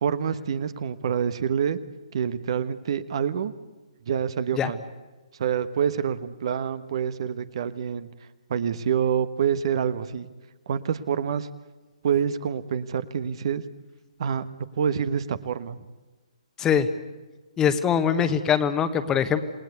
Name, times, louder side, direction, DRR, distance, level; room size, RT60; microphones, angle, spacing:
voice 1, 0.0-1.8 2.1-3.5 4.1-4.8 5.4-8.1 8.5-10.3 10.7-11.5 12.0-13.6 14.2-14.5 14.7-15.8, right 8 dB, 50° right, 13 dB, 1.2 m, -26 dB
voice 2, 17.6-19.4, left 8 dB, 15° left, 10 dB, 1.4 m, -22 dB
28.0 x 19.5 x 8.2 m, 1.2 s
figure-of-eight pair, 135°, 4 cm